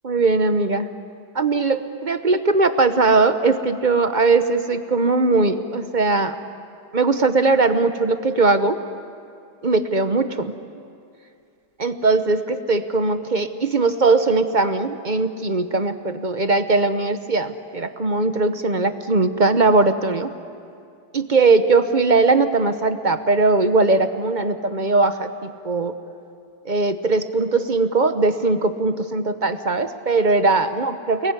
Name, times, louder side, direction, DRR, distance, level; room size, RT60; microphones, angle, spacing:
voice 1, 0.0-0.9 1.3-6.3 6.9-8.8 9.6-10.5 11.8-20.3 21.1-25.9 26.6-31.3, right 3 dB, 35° right, 9 dB, 0.9 m, -20 dB
29.0 x 21.0 x 9.7 m, 2.5 s
omnidirectional pair, 1.8 m